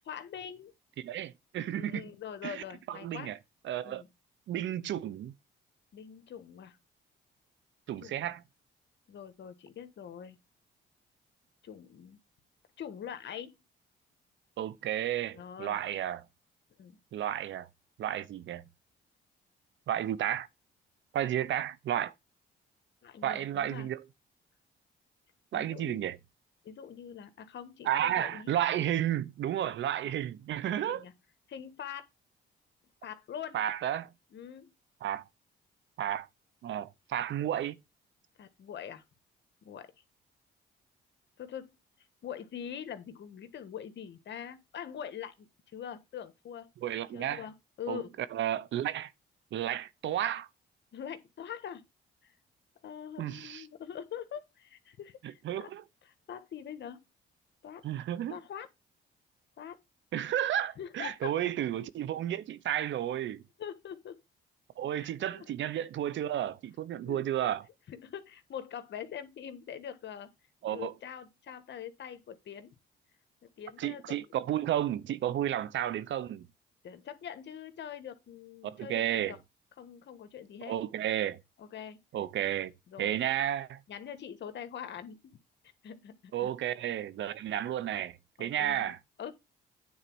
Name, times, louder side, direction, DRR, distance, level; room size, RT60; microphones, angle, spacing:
voice 1, 0.1-0.7 1.7-3.3 3.8-4.1 5.9-6.8 8.0-8.3 9.1-10.4 11.6-12.2 12.8-13.6 15.3-15.8 16.8-17.0 23.0-23.9 25.5-26.0 26.6-28.5 30.0-30.1 30.6-31.1 31.5-32.0 33.0-33.6 34.3-34.7 38.4-39.0 39.6-39.9 41.4-41.7 42.2-46.7 47.1-48.1 50.9-51.8 52.2-52.3 52.8-55.7 56.3-57.0 57.6-57.8 58.3-58.7 59.6-59.8 60.8-61.5 63.6-64.2 64.9-65.5 67.0-67.3 67.9-70.3 70.7-72.7 73.4-74.2 76.8-79.4 79.8-80.7 81.6-82.0 82.9-83.2 83.9-85.4 85.8-86.5 86.8-86.9 88.4-89.3, left 8 dB, 65° left, 1.5 m, -43 dB
voice 2, 1.0-2.0 2.4-3.4 3.6-4.0 4.5-5.3 7.9-8.4 14.6-16.2 17.1-17.7 18.0-18.6 19.9-20.5 21.1-22.1 23.2-24.0 25.5-26.2 27.8-31.0 33.5-34.1 35.0-35.2 36.0-36.3 36.6-37.8 46.8-47.4 47.9-48.0 48.3-49.1 49.5-50.5 53.2-53.7 55.4-55.8 57.8-58.4 60.1-63.4 64.8-67.7 70.6-70.9 73.8-76.5 78.6-79.3 80.7-81.4 82.1-82.7 83.0-83.8 86.3-89.0, right 11 dB, 70° right, 0.8 m, -32 dB
9.5 x 4.0 x 6.1 m
cardioid pair, 90°, 20 cm